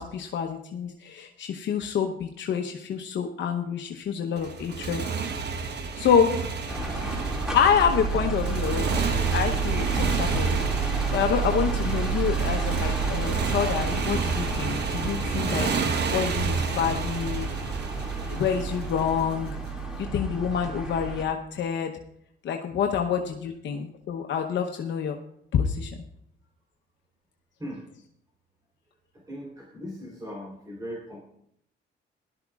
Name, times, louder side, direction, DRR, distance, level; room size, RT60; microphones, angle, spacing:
voice 1, 0.0-5.0 5.9-6.4 7.5-9.0 9.3-10.7 11.1-17.5 18.3-19.5 20.1-21.9 22.4-25.1 25.5-25.9, left 7 dB, 70° left, 3 dB, 0.9 m, -27 dB
Motorcycle, 4.4-19.5, right 5 dB, 55° right, 1.1 m, -31 dB
sound 1, 6.7-21.2, right 4 dB, 5° right, 2.3 m, -30 dB
voice 2, 29.1-31.2, equal, 20° right, -3 dB, 3.5 m, -39 dB
17.0 x 12.0 x 2.4 m, 0.71 s
cardioid pair, 90°, 20 cm